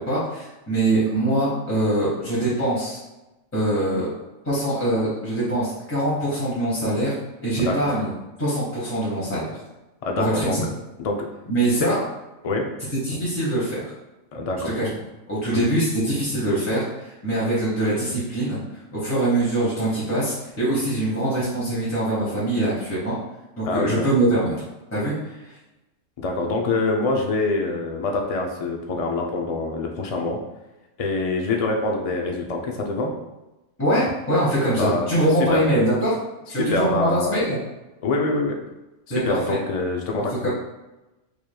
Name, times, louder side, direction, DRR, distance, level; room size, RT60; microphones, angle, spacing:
voice 1, 0.0-3.0 3.5-4.1 4.4-7.1 7.4-8.1 8.4-9.5 10.2-10.6 11.5-12.0 13.0-13.8 14.6-14.9 15.3-18.6 18.9-23.2 23.6-24.5 24.9-25.1 25.5-25.6 33.8-36.2 36.5-37.6 39.1-39.6 40.4-40.5, right 1 dB, 10° left, -10 dB, 1.0 m, -23 dB
voice 2, 10.0-10.6 11.0-11.3 11.6-12.0 12.4-12.7 14.3-14.7 15.5-15.7 23.6-24.1 26.2-30.4 31.0-33.1 34.8-35.1 35.5-35.6 36.6-37.5 38.0-38.6 39.1-40.5, left 3 dB, 70° left, 1 dB, 0.3 m, -25 dB
4.9 x 3.0 x 2.3 m, 1.0 s
omnidirectional pair, 1.3 m